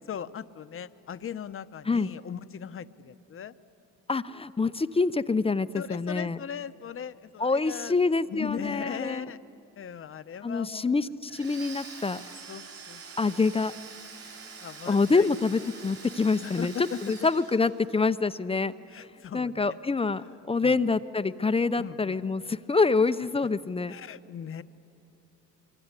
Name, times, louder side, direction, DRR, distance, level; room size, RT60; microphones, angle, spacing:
voice 1, 0.1-3.5 5.7-8.0 8.2-9.4 9.8-10.9 12.5-13.4 14.6-15.3 16.4-17.1 18.9-19.8 20.2-20.8 21.8-22.2 23.9-24.6, left 8 dB, 45° left, 11 dB, 0.9 m, -39 dB
voice 2, 4.1-6.4 7.4-9.3 10.4-12.2 13.2-13.7 14.9-18.7 19.0-19.1 19.3-23.9, left 4 dB, 20° left, 12 dB, 0.7 m, -26 dB
Domestic sounds home sounds, 11.3-18.1, right 5 dB, 55° right, 6.9 m, -45 dB
25.0 x 24.0 x 9.8 m, 2.8 s
cardioid pair, 90°, 30 cm